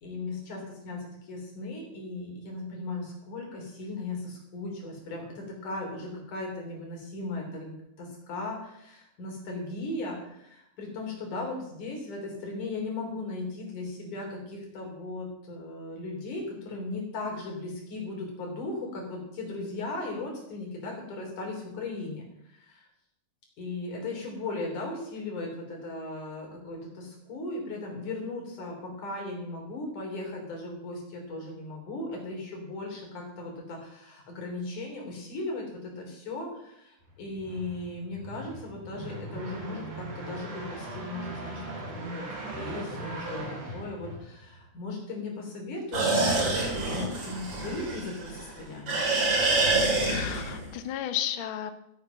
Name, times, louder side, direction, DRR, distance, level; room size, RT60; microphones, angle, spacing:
voice 1, 0.0-22.9 23.6-41.6 42.1-43.5 43.7-49.1, left 2 dB, 80° left, 0 dB, 5.0 m, -37 dB
sound 1, 37.1-44.7, right 1 dB, 85° right, 4.3 m, -39 dB
sound 2, 45.9-48.5 48.9-50.7, right 2 dB, 50° right, 4.2 m, -26 dB
voice 2, 50.0-51.7, left 10 dB, 65° left, 9 dB, 1.3 m, -33 dB
14.5 x 8.7 x 5.8 m, 0.79 s
omnidirectional pair, 3.5 m